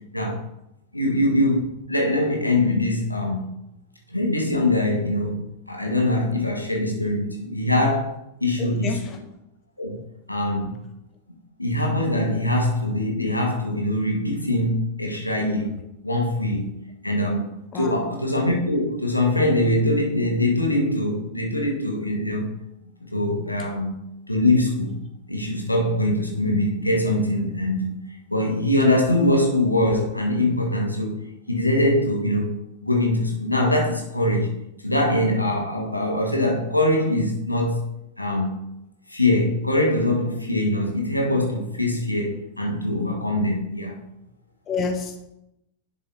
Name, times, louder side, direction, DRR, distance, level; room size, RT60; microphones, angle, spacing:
voice 1, 0.1-0.4 0.9-3.5 4.1-9.2 9.8-10.0 10.3-10.8 11.6-15.7 16.0-16.7 17.0-22.5 23.1-24.0 24.3-25.0 25.3-28.0 28.3-34.5 34.8-37.9 38.2-38.6 39.1-44.0, left 1 dB, 85° left, 1.2 m, -23 dB
voice 2, 8.6-9.2 17.7-18.0 44.7-45.2, left 4 dB, 30° left, 1.1 m, -29 dB
10.5 x 5.5 x 2.8 m
figure-of-eight pair, 90°, 0 cm